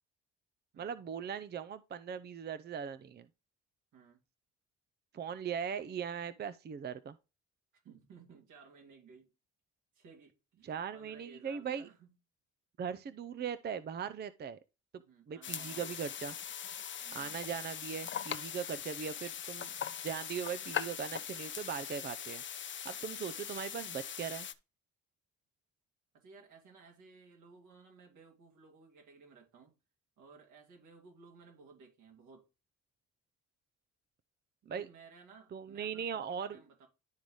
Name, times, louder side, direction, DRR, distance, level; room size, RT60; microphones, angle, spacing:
voice 1, 0.8-3.3 5.1-7.2 10.6-11.8 12.8-14.6 15.3-16.3 17.1-19.7 20.0-22.4 22.8-24.5 34.7-34.9 35.5-36.6, right 7 dB, 35° right, 0.5 m, -39 dB
voice 2, 7.7-9.3 9.9-12.1 15.0-16.1 17.0-17.4 22.9-23.2 26.1-29.7 30.2-32.5 34.6-36.9, right 4 dB, 80° right, 2.7 m, -58 dB
sound 1, 15.4-24.5, left 9 dB, 40° left, 0.6 m, -41 dB
11.5 x 3.9 x 3.0 m
cardioid pair, 90°, 30 cm